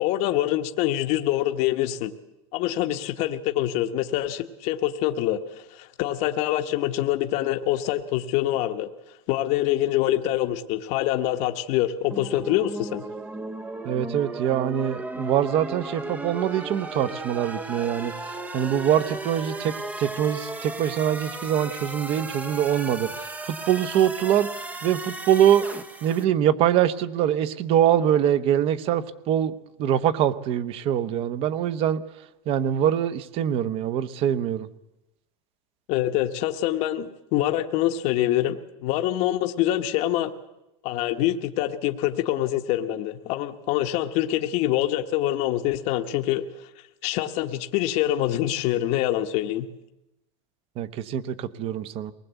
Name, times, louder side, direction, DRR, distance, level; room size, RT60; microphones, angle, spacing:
voice 1, 0.0-2.1 2.5-8.9 9.3-13.0 35.9-40.3 40.8-46.5 47.0-49.7, left 13 dB, 45° left, 7 dB, 1.1 m, -25 dB
sound 1, 12.1-26.2, right 2 dB, 10° right, 0.7 m, -35 dB
voice 2, 13.8-18.1 18.5-23.1 23.4-24.5 24.8-25.6 26.0-29.5 29.8-32.0 32.5-34.7 50.8-52.1, right 10 dB, 40° right, 14 dB, 1.0 m, -23 dB
23.0 x 19.5 x 8.2 m, 0.93 s
supercardioid pair, 160°, 16 cm